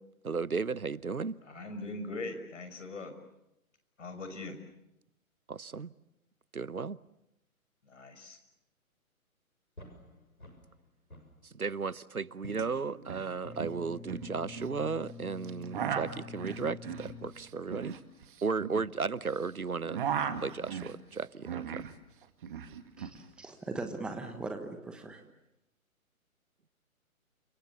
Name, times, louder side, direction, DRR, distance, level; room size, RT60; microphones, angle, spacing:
voice 1, 0.2-1.3 5.5-5.9 6.5-7.0 11.5-17.9 18.4-20.0 20.4-21.8, right 5 dB, 85° right, 0.9 m, -35 dB
voice 2, 1.5-3.1 4.0-4.6 7.8-8.4, left 2 dB, 60° left, 5.9 m, -41 dB
sound 1, 9.8-10.8 11.1-12.0 12.4-17.8, left 4 dB, 85° left, 7.0 m, -48 dB
sound 2, 12.5-12.6 12.9-13.3 13.5-14.8 15.4-19.4 19.7-21.9 22.2-23.2, right 8 dB, 35° right, 2.0 m, -37 dB
voice 3, 23.0-25.2, right 2 dB, ahead, 1.2 m, -40 dB
30.0 x 25.5 x 7.2 m
figure-of-eight pair, 130°, 43 cm